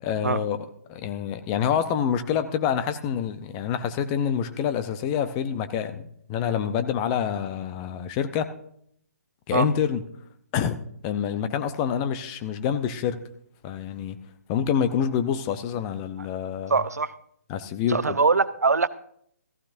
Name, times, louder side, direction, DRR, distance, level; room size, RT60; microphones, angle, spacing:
voice 1, 0.0-8.5 9.5-10.0 10.5-13.2 13.6-14.2 14.5-16.7 17.5-18.2, left 8 dB, 25° left, 0.7 m, -27 dB
voice 2, 16.7-17.1 17.9-18.9, right 4 dB, 85° right, 0.6 m, -22 dB
15.0 x 14.5 x 2.7 m
figure-of-eight pair, 140°, 8 cm